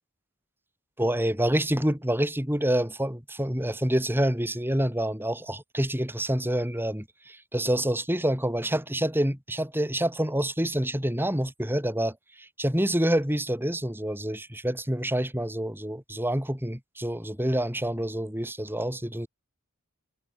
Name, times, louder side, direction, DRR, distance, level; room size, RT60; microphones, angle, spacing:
voice 1, 1.0-19.3, right 1 dB, 10° right, 4.7 m, -27 dB
head